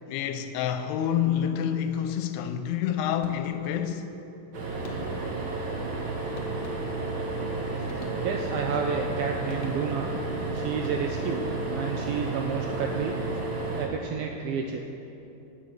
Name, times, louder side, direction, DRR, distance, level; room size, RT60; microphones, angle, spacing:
voice 1, 0.1-4.1, left 9 dB, 85° left, 2.6 m, -28 dB
sound 1, 3.2-3.8 4.8-5.4 6.3-7.2 7.8-8.6 9.5-10.2 10.7-11.4, left 3 dB, 65° left, 1.3 m, -45 dB
sound 2, 4.5-13.9, right 3 dB, 55° right, 1.4 m, -32 dB
voice 2, 8.2-10.1 10.5-13.2 13.8-14.8, right 6 dB, 80° right, 2.3 m, -30 dB
18.0 x 7.2 x 6.5 m
omnidirectional pair, 4.8 m